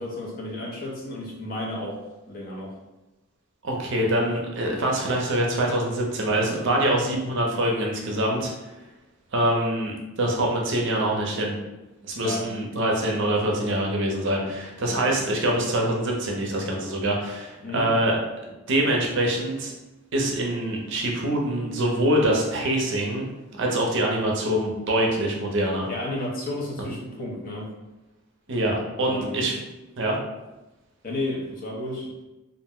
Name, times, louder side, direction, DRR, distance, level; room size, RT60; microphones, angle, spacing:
voice 1, 0.0-2.0 2.3-2.7 12.2-12.4 14.8-15.0 17.6-17.9 25.9-27.7 29.0-29.4 31.0-32.1, left 1 dB, 40° left, -3 dB, 0.6 m, -32 dB
voice 2, 3.6-8.5 9.3-11.6 12.1-18.2 18.7-19.7 20.1-23.3 23.5-25.9 28.5-29.6 30.0-30.2, right 1 dB, 55° right, -1 dB, 0.6 m, -24 dB
2.5 x 2.1 x 3.5 m, 1.0 s
head